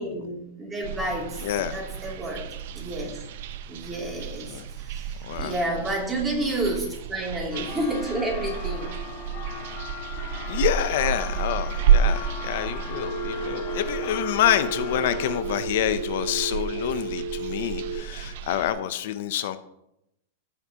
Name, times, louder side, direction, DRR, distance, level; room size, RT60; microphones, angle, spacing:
voice 1, 0.0-2.5 2.7-3.2 3.7-8.9, right 1 dB, 15° right, -2 dB, 2.7 m, -30 dB
sound 1, 0.8-18.7, right 8 dB, 60° right, 0.6 m, -30 dB
voice 2, 1.4-1.8 4.5-4.7 5.2-5.6 10.5-19.6, left 11 dB, 60° left, 11 dB, 0.6 m, -27 dB
sound 2, 7.5-15.4, left 6 dB, 35° left, 1.4 m, -38 dB
Telephone, 13.0-18.0, right 3 dB, 35° right, 1.8 m, -33 dB
16.5 x 5.8 x 2.9 m, 0.83 s
supercardioid pair, 150°, 0 cm